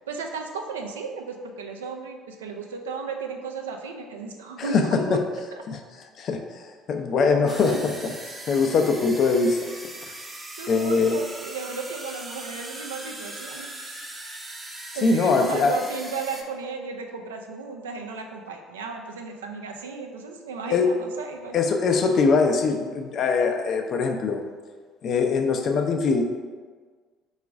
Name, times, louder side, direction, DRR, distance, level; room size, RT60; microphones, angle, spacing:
voice 1, 0.1-5.2 7.7-7.8 10.6-13.8 15.0-21.7, right 4 dB, 80° right, 3 dB, 0.4 m, -35 dB
voice 2, 4.6-5.2 5.7-5.8 6.2-6.4 6.9-7.9 8.5-9.6 10.7-11.2 15.0-15.8 20.7-20.9 21.5-24.4 25.0-26.2, left 4 dB, 50° left, 4 dB, 0.5 m, -22 dB
sound 1, 7.5-16.4, right 1 dB, 20° right, 0.6 m, -39 dB
3.8 x 2.4 x 4.6 m, 1.5 s
figure-of-eight pair, 55°, 0 cm